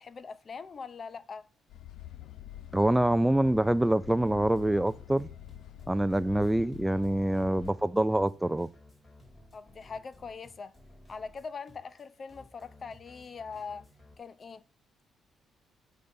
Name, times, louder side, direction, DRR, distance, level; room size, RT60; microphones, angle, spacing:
voice 1, 0.0-1.4 9.5-10.7 11.1-13.9 14.2-14.6, left 5 dB, 40° left, 0.6 m, -42 dB
sound 1, 1.7-7.7, left 12 dB, 80° left, 0.4 m, -46 dB
voice 2, 2.7-5.3 5.9-8.7, right 1 dB, 10° right, 0.4 m, -25 dB
sound 2, 4.2-14.1, left 1 dB, 25° left, 4.0 m, -57 dB
8.6 x 4.0 x 6.4 m
cardioid pair, 90°, 0 cm